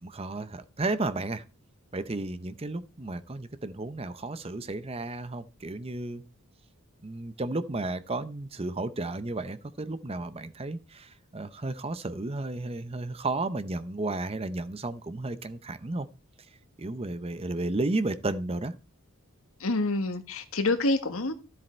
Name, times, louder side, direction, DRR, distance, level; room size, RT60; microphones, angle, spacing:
voice 1, 0.0-1.4 1.9-6.2 7.0-16.1 16.8-18.7, right 2 dB, 25° right, 0.7 m, -33 dB
voice 2, 19.6-21.3, left 2 dB, 65° left, 1.5 m, -27 dB
12.5 x 7.6 x 4.4 m
head